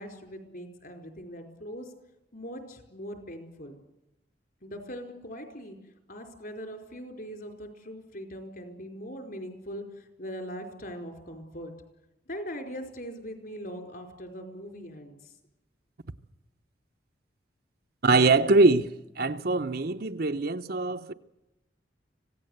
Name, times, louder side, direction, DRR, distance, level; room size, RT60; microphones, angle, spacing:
voice 1, 0.0-1.9 2.3-3.8 4.6-5.8 6.1-11.8 12.3-15.3, equal, 50° left, 4.7 m, -41 dB
voice 2, 18.0-18.9 19.2-21.1, right 3 dB, 55° right, 0.9 m, -23 dB
26.0 x 17.0 x 8.1 m
head